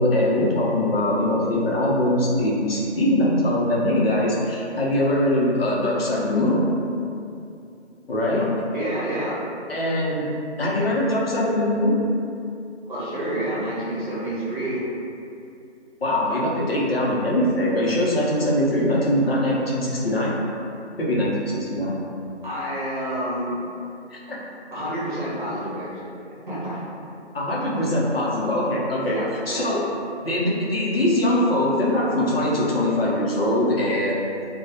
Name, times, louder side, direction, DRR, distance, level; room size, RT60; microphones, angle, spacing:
voice 1, 0.0-6.6 8.1-8.5 9.7-10.3 10.6-12.0 16.0-20.4 21.0-22.0 24.1-24.2 27.3-29.2 29.5-29.8 30.2-34.3, left 1 dB, 60° left, -5 dB, 0.6 m, -22 dB
voice 2, 8.7-9.4 12.8-14.9 16.3-16.4 22.4-23.5 24.7-26.1 26.5-26.8 29.1-29.7, right 1 dB, 45° right, -9 dB, 0.8 m, -28 dB
2.2 x 2.1 x 2.7 m, 2.5 s
figure-of-eight pair, 165°, 35 cm